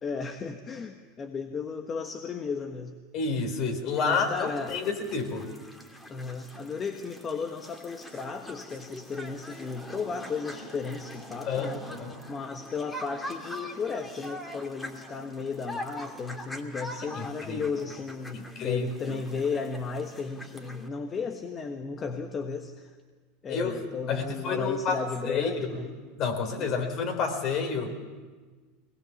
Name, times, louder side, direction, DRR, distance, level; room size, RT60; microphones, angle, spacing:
voice 1, 0.0-3.0 4.0-4.8 6.1-11.8 12.3-22.9 23.4-25.9 26.6-26.9, left 5 dB, 30° left, 5 dB, 1.5 m, -34 dB
voice 2, 3.1-5.5 11.5-12.2 17.1-17.6 18.3-19.2 23.5-23.8 24.1-25.5 26.2-27.9, left 5 dB, 50° left, 5 dB, 4.1 m, -30 dB
sound 1, 3.9-20.9, left 1 dB, 10° left, 2.8 m, -43 dB
22.5 x 19.5 x 7.3 m, 1.4 s
hypercardioid pair, 95°, 0 cm